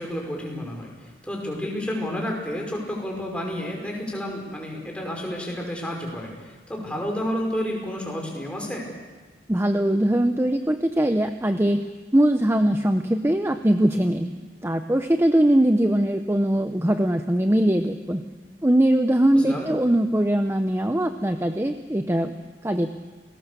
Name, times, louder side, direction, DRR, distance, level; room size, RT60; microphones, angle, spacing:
voice 1, 0.0-8.8 19.3-19.7, equal, 5° left, -1 dB, 5.6 m, -30 dB
voice 2, 9.5-11.8 12.1-14.3 14.6-18.2 18.6-22.3 22.6-22.9, right 1 dB, 15° right, 7 dB, 0.8 m, -21 dB
28.5 x 20.0 x 6.9 m, 1.3 s
head